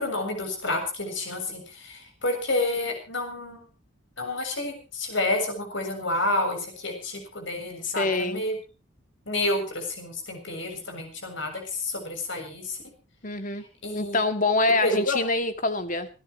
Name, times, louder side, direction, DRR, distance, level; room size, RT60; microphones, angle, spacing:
voice 1, 0.0-3.6 4.2-8.6 9.3-12.8 13.8-14.2 14.8-15.2, left 2 dB, 65° left, 5 dB, 7.2 m, -29 dB
voice 2, 7.8-8.4 13.2-13.6 13.9-16.1, left 2 dB, 45° left, 8 dB, 2.2 m, -25 dB
27.0 x 13.5 x 3.1 m, 0.34 s
head